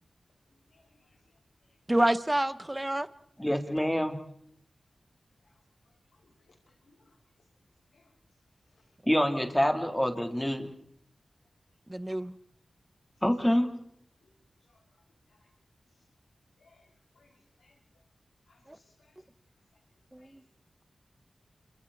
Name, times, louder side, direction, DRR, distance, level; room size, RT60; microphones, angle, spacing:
voice 1, 0.7-1.2 6.2-6.3 6.7-7.1 7.9-8.1 8.8-8.9 14.2-14.3 14.7-14.8 15.3-15.5 16.6-16.9 17.2-17.7 18.5-19.1 20.2-20.4, left 3 dB, 85° left, 5.2 m, -66 dB
voice 2, 1.9-3.1 11.9-12.3 18.7-18.8 20.1-20.4, right 1 dB, 20° right, 1.4 m, -28 dB
voice 3, 3.4-4.2 9.1-10.7 13.2-13.7, equal, 10° left, 3.8 m, -26 dB
30.0 x 27.5 x 4.4 m
cardioid pair, 45°, 0 cm